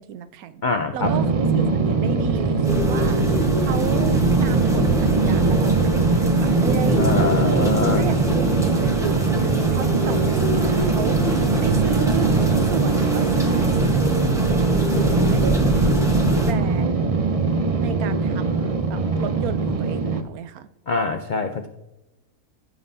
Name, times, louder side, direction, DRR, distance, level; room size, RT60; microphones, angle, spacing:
voice 1, 0.0-0.6 0.9-3.2 3.6-7.1 7.4-16.0 16.5-17.1 17.8-20.7, right 9 dB, 75° right, 13 dB, 1.0 m, -33 dB
voice 2, 0.6-1.1 7.0-8.0 20.9-21.7, left 3 dB, 75° left, 7 dB, 0.4 m, -24 dB
sound 1, 1.0-20.2, right 4 dB, 50° right, 0.4 m, -21 dB
sound 2, 2.6-16.5, right 1 dB, ahead, 0.9 m, -24 dB
15.5 x 7.5 x 2.7 m, 0.97 s
omnidirectional pair, 1.6 m